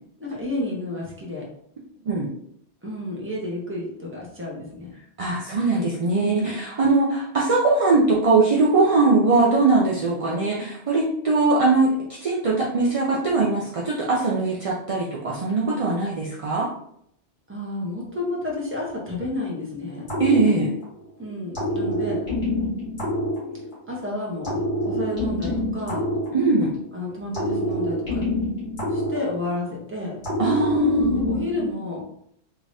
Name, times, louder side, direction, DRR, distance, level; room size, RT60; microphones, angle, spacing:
voice 1, 0.2-1.5 2.8-4.9 6.2-6.5 17.5-20.1 21.2-22.3 23.9-26.0 26.9-28.2 28.9-30.2 31.2-32.0, left 2 dB, 10° right, -3 dB, 0.9 m, -31 dB
voice 2, 5.2-11.9 12.2-16.7 20.2-20.7 26.3-26.7 30.4-31.2, right 3 dB, 45° right, -3 dB, 0.4 m, -21 dB
sound 1, 20.1-21.1 21.5-24.0 24.4-26.9 27.3-29.8 30.2-31.7, left 1 dB, 40° left, 1.7 m, -26 dB
3.5 x 3.3 x 2.6 m, 0.69 s
omnidirectional pair, 1.2 m